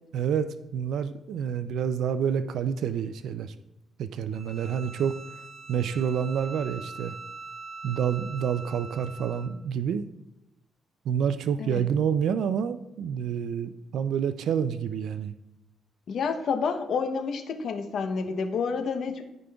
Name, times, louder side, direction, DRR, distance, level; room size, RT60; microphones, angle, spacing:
voice 1, 0.1-3.5 4.0-5.2 5.7-7.2 7.8-10.0 11.0-15.3, right 8 dB, 75° right, 12 dB, 0.3 m, -28 dB
Bowed string instrument, 4.3-9.5, right 4 dB, 25° right, 2.0 m, -43 dB
voice 2, 16.1-19.2, left 5 dB, 60° left, 6 dB, 0.8 m, -29 dB
13.5 x 5.1 x 2.3 m, 0.88 s
cardioid pair, 90°, 0 cm